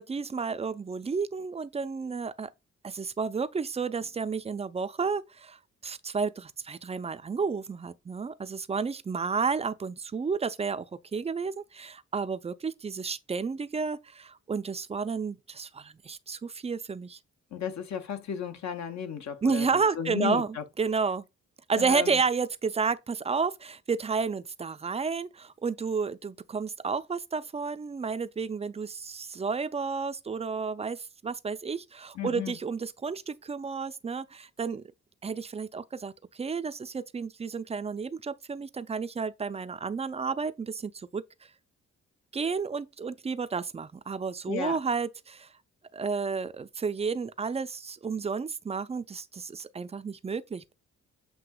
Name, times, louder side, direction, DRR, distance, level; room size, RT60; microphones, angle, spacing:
voice 1, 0.0-2.5 2.8-10.9 11.1-17.2 19.4-20.5 20.8-21.2 21.7-34.8 35.2-41.2 42.3-45.5 45.9-50.7, right 5 dB, 20° right, 0.3 m, -31 dB
voice 2, 17.5-20.6 21.8-22.2 32.1-32.6 44.5-44.8, left 8 dB, 65° left, 0.8 m, -34 dB
7.7 x 2.7 x 2.3 m
cardioid pair, 70°, 30 cm